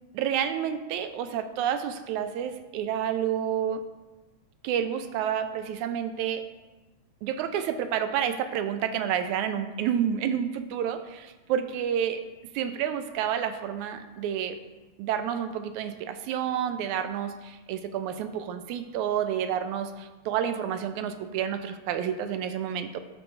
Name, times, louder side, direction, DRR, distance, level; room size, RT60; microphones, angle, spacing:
voice 1, 0.1-3.8 4.6-6.4 7.2-12.2 12.5-14.6 15.0-23.0, right 9 dB, 80° right, 9 dB, 1.9 m, -29 dB
12.5 x 4.9 x 3.8 m, 1.2 s
omnidirectional pair, 3.5 m